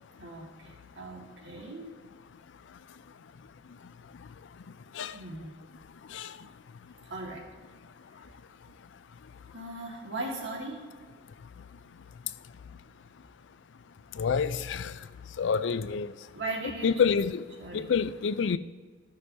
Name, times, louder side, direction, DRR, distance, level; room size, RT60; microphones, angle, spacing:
voice 1, 0.2-1.9 5.1-5.5 7.1-7.4 9.5-10.8 16.3-16.9 17.6-17.9, right 2 dB, 85° right, 1.9 m, -38 dB
voice 2, 14.2-14.9 15.4-16.1 16.8-17.4 17.7-18.6, left 6 dB, 80° left, 0.4 m, -27 dB
14.0 x 6.4 x 2.8 m
head